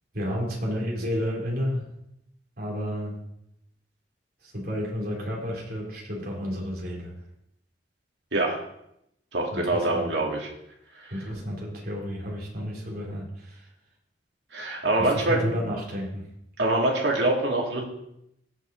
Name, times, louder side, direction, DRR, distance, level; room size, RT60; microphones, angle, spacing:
voice 1, 0.1-1.9 2.6-3.2 4.4-7.1 9.5-10.1 11.1-13.7 15.0-16.3, equal, 60° right, -3 dB, 3.3 m, -31 dB
voice 2, 9.3-10.5 11.0-11.1 14.5-15.4 16.6-17.8, right 2 dB, 75° right, -1 dB, 2.5 m, -24 dB
16.5 x 5.5 x 3.9 m, 0.78 s
head